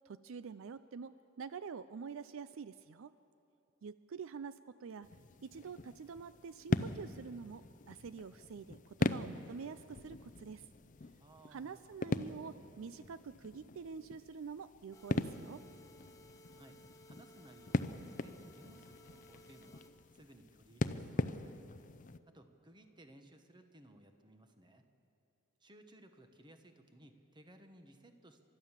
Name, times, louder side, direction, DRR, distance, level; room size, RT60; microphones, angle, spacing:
voice 1, 0.1-3.1 3.8-5.1 5.4-10.7 11.5-15.6, right 5 dB, 65° right, 14 dB, 0.4 m, -47 dB
sound 1, 5.0-22.2, left 2 dB, 40° left, 0.5 m, -41 dB
voice 2, 11.2-12.0 16.5-21.6 22.3-24.9 25.6-28.4, right 1 dB, 20° right, 6 dB, 1.2 m, -60 dB
sound 2, 14.9-19.9, left 1 dB, 15° left, 1.4 m, -60 dB
29.5 x 13.0 x 7.4 m, 2.8 s
head